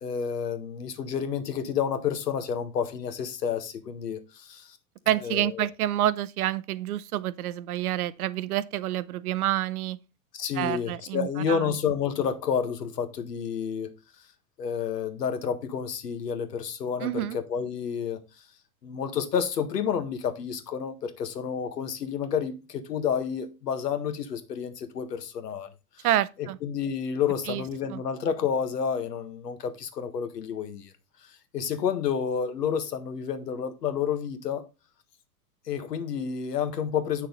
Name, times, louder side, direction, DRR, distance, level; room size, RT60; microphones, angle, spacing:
voice 1, 0.0-4.8 5.2-5.7 10.3-13.9 14.6-18.2 18.8-25.7 26.0-26.1 26.4-30.9 31.2-34.6 35.7-37.3, left 7 dB, 80° left, 1.7 m, -30 dB
voice 2, 5.1-10.0 10.5-11.7 17.0-17.4 26.0-26.6 27.4-27.6 27.9-28.0, right 13 dB, 65° right, 0.8 m, -28 dB
8.6 x 6.3 x 3.9 m
hypercardioid pair, 115°, 48 cm